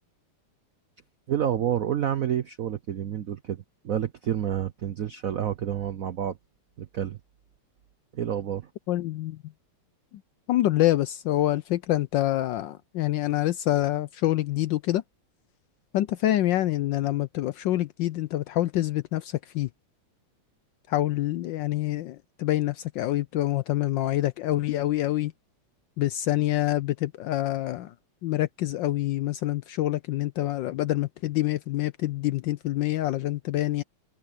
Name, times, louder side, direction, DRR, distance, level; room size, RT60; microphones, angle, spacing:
voice 1, 1.3-6.4 6.8-7.2 8.1-8.7, right 10 dB, 70° right, 0.8 m, -29 dB
voice 2, 8.9-9.4 10.5-15.0 15.9-19.7 20.9-25.3 26.0-27.9 28.2-33.8, left 14 dB, 75° left, 1.1 m, -26 dB
omnidirectional pair, 2.4 m